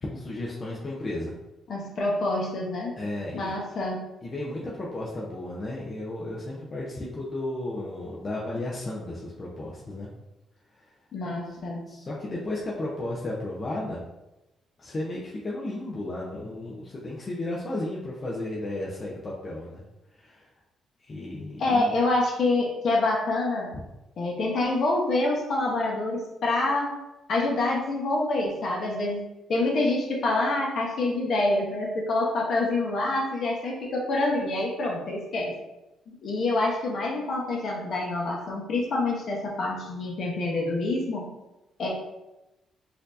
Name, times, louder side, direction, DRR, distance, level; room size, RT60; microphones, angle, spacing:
voice 1, 0.0-1.3 3.0-3.6 4.2-10.1 10.7-10.9 11.9-14.0 14.8-19.8 20.1-20.5 21.0-21.9, left 1 dB, 35° left, -4 dB, 0.6 m, -34 dB
voice 2, 1.7-2.9 3.3-4.0 11.1-11.8 21.6-23.7 24.2-26.9 27.3-29.2 29.5-35.5 36.1-41.2 41.8-41.9, left 2 dB, 55° left, -1 dB, 1.0 m, -26 dB
4.2 x 2.7 x 2.6 m, 0.96 s
cardioid pair, 90°, 0 cm